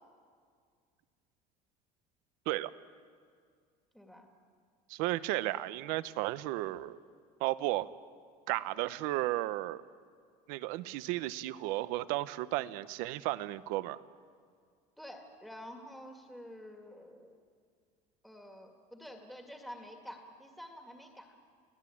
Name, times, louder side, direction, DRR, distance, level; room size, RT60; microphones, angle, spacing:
voice 1, 3.9-4.3 15.0-17.4 18.2-21.4, equal, ahead, 2 dB, 2.0 m, -49 dB
voice 2, 4.9-7.0 7.4-7.9 8.5-9.8 10.5-14.0, right 17 dB, 75° right, 15 dB, 0.8 m, -34 dB
29.5 x 17.5 x 8.6 m, 2.1 s
cardioid pair, 170°, 15 cm